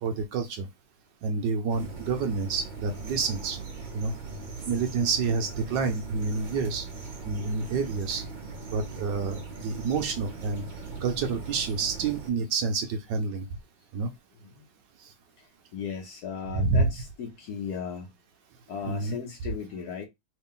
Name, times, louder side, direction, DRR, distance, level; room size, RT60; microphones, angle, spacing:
voice 1, 0.0-0.7 1.2-3.6 3.9-4.1 4.7-6.9 7.3-8.2 8.7-10.6 11.0-13.4 13.9-14.1 16.5-16.8 18.9-19.2, right 4 dB, 70° right, 1.1 m, -28 dB
sound 1, 1.7-12.3, right 4 dB, 35° right, 0.7 m, -39 dB
voice 2, 15.4-18.1 18.7-20.0, left 7 dB, 65° left, 1.0 m, -37 dB
3.1 x 2.9 x 3.6 m
omnidirectional pair, 2.2 m